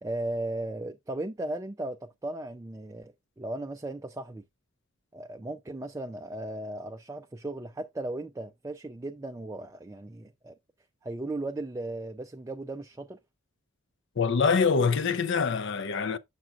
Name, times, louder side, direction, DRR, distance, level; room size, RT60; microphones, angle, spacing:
voice 1, 0.0-4.4 5.1-10.5 11.0-13.2, right 2 dB, 15° right, 0.3 m, -36 dB
voice 2, 14.2-16.2, left 5 dB, 55° left, 0.5 m, -25 dB
7.4 x 5.9 x 2.3 m
head